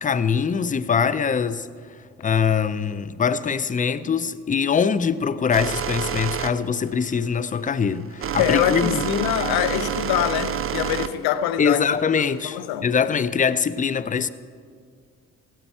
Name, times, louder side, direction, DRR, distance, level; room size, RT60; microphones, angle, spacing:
voice 1, 0.0-1.7 2.2-9.0 11.6-14.3, left 6 dB, 20° left, 0.5 m, -23 dB
sound 1, 5.5-12.4, right 8 dB, 35° right, 0.7 m, -28 dB
voice 2, 8.4-11.9 12.4-12.9, left 11 dB, 70° left, 0.7 m, -24 dB
16.5 x 8.2 x 4.5 m
hypercardioid pair, 55°, 38 cm